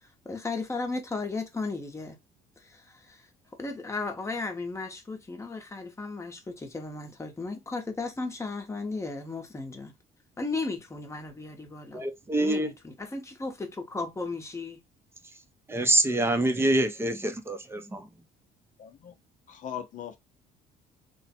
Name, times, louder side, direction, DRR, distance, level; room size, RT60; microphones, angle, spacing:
voice 1, 0.2-2.2 2.6-3.2 3.6-9.9 10.4-12.0 12.4-14.8, left 3 dB, 15° left, 0.9 m, -35 dB
voice 2, 11.9-12.7 15.7-18.1, right 2 dB, 15° right, 0.6 m, -26 dB
voice 3, 18.8-19.1 19.5-20.2, left 9 dB, 50° left, 0.7 m, -39 dB
3.2 x 2.2 x 4.2 m
cardioid pair, 110°, 17 cm